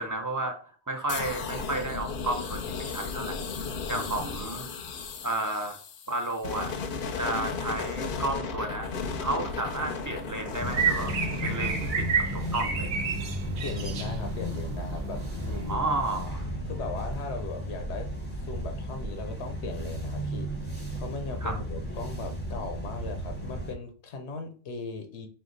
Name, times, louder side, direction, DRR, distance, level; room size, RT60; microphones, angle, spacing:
voice 1, 0.0-3.4 3.9-4.7 5.2-5.8 6.1-6.7 7.2-8.9 9.2-11.1 11.4-13.0 15.7-16.5 21.4-21.6, right 2 dB, 25° right, 4 dB, 0.5 m, -32 dB
sound 1, 1.1-12.9, left 5 dB, 60° left, 0.7 m, -35 dB
voice 2, 3.9-4.3 13.6-15.8 16.7-18.1 18.4-20.5 20.9-25.3, left 4 dB, 90° left, 6 dB, 1.0 m, -38 dB
sound 2, 8.8-15.7, right 6 dB, 70° right, 0.9 m, -33 dB
sound 3, 10.6-23.7, right 1 dB, 10° left, 0.8 m, -34 dB
4.6 x 2.3 x 3.8 m, 0.41 s
omnidirectional pair, 1.1 m